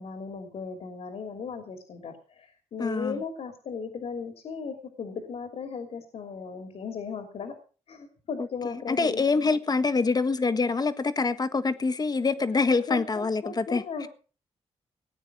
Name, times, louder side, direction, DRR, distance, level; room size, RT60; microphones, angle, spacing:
voice 1, 0.0-7.5 7.9-9.2 12.7-14.1, left 5 dB, 75° left, 3.0 m, -37 dB
voice 2, 2.8-3.2 8.4-14.1, left 4 dB, 35° left, 1.4 m, -26 dB
19.0 x 9.3 x 6.0 m
cardioid pair, 90°, 11 cm